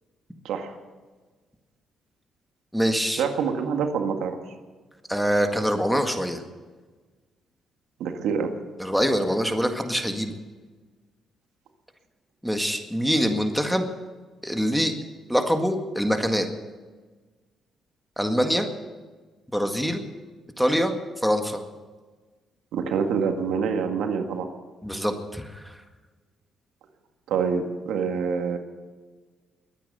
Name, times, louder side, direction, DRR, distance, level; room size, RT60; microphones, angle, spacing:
voice 1, 0.4-0.8 3.2-4.4 8.0-8.5 22.7-24.5 27.3-28.6, right 6 dB, 85° right, 5 dB, 1.8 m, -26 dB
voice 2, 2.7-3.2 5.1-6.4 8.8-10.4 12.4-13.9 14.4-14.9 15.3-16.5 18.2-18.7 19.5-20.0 20.6-21.6 24.8-25.8, equal, ahead, 5 dB, 1.8 m, -24 dB
21.5 x 9.2 x 6.8 m, 1.4 s
cardioid pair, 90°, 0 cm